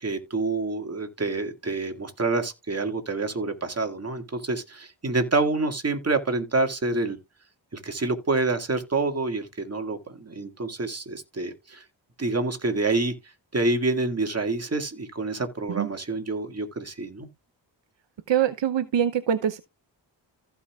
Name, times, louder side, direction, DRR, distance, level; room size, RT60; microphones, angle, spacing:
voice 1, 0.0-7.2 7.7-11.8 12.2-13.1 13.5-17.3, right 3 dB, 35° right, 2.1 m, -27 dB
voice 2, 18.3-19.6, right 9 dB, 70° right, 0.8 m, -24 dB
15.0 x 5.6 x 2.4 m
cardioid pair, 60°, 46 cm